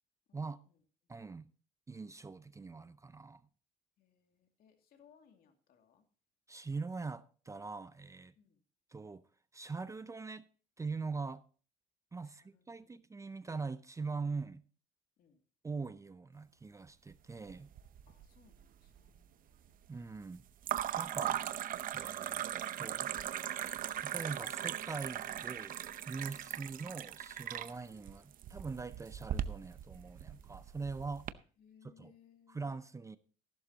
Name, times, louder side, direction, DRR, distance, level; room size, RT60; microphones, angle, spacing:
voice 1, 0.3-0.8 4.0-6.0 8.4-8.6 12.2-13.0 15.2-15.4 18.1-19.8 26.5-26.6 31.6-32.6, left 8 dB, 65° left, 2.5 m, -66 dB
voice 2, 1.1-1.5 1.9-3.4 6.5-8.3 8.9-9.2 9.5-10.5 10.8-11.4 12.1-14.6 15.6-17.7 19.9-20.4 21.0-21.4 21.9-22.4 22.8-23.1 24.0-25.8 26.1-31.3 31.8-32.1 32.5-33.2, right 4 dB, 20° right, 0.5 m, -42 dB
sound 1, 17.5-18.2 18.5-19.2 20.6-31.3, right 11 dB, 55° right, 0.7 m, -39 dB
14.0 x 12.0 x 2.8 m
cardioid pair, 110°, 17 cm